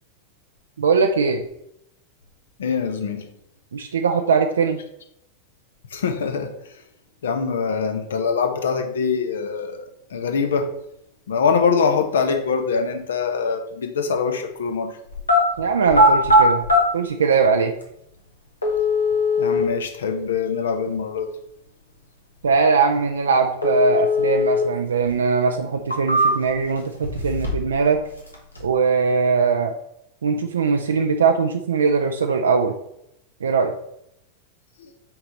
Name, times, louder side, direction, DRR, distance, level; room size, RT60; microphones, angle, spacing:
voice 1, 0.8-1.4 3.7-4.8 15.6-16.6 16.9-17.7 22.4-28.0 28.6-29.7 30.2-32.7 33.4-33.7, right 5 dB, 70° right, 0.4 m, -20 dB
voice 2, 2.6-3.3 5.9-6.5 7.2-9.8 10.1-10.7 11.3-14.9 19.4-21.3, left 5 dB, 65° left, 0.8 m, -23 dB
sound 1, 15.1-15.4 15.9-16.8 17.8-17.9 18.6-19.6 23.6-24.6 25.0-25.1 25.7-26.6 27.0-27.8 28.0-28.6, left 1 dB, 80° left, 1.2 m, -19 dB
5.8 x 4.0 x 4.3 m
figure-of-eight pair, 90°, 0 cm